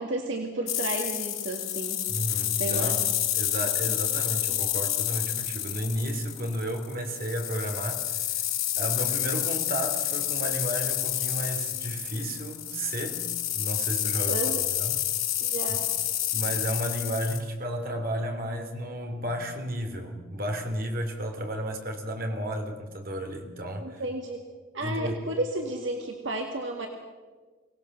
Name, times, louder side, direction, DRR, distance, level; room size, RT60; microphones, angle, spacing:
voice 1, 0.0-2.0 2.5-3.0 3.9-4.0 14.3-14.7 15.4-15.9 23.8-24.4 24.7-26.9, right 2 dB, 60° right, 2 dB, 1.9 m, -32 dB
sound 1, 0.7-17.4, left 12 dB, 80° left, 4.6 m, -29 dB
voice 2, 2.1-3.0 3.3-8.2 8.8-13.2 13.5-14.4 14.8-15.0 15.7-15.8 16.3-24.0 24.8-25.2, equal, 45° right, 4 dB, 2.9 m, -32 dB
24.0 x 18.0 x 6.7 m, 1.3 s
head